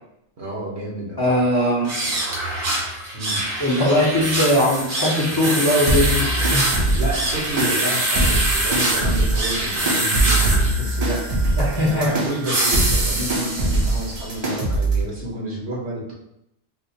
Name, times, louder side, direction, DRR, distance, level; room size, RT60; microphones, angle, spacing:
voice 1, 0.4-1.3 3.1-3.4 6.9-16.1, right 1 dB, 70° right, -4 dB, 1.2 m, -30 dB
voice 2, 1.2-1.9 3.6-6.7 11.6-12.1, left 1 dB, 25° left, -5 dB, 0.6 m, -20 dB
sound 1, 1.8-14.3, right 1 dB, 90° right, 1.2 m, -25 dB
sound 2, 5.9-15.0, right 2 dB, 40° right, 0.6 m, -23 dB
4.1 x 2.4 x 2.8 m, 0.81 s
omnidirectional pair, 1.2 m